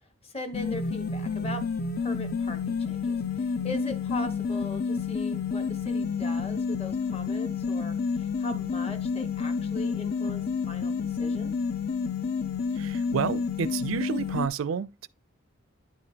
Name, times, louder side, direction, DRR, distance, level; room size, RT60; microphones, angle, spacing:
voice 1, 0.2-1.6 2.0-11.5, left 2 dB, 30° left, 1.2 m, -39 dB
sound 1, 0.5-14.5, left 5 dB, 45° left, 0.6 m, -29 dB
voice 2, 12.8-15.1, right 6 dB, 75° right, 0.4 m, -30 dB
10.5 x 4.9 x 2.8 m
head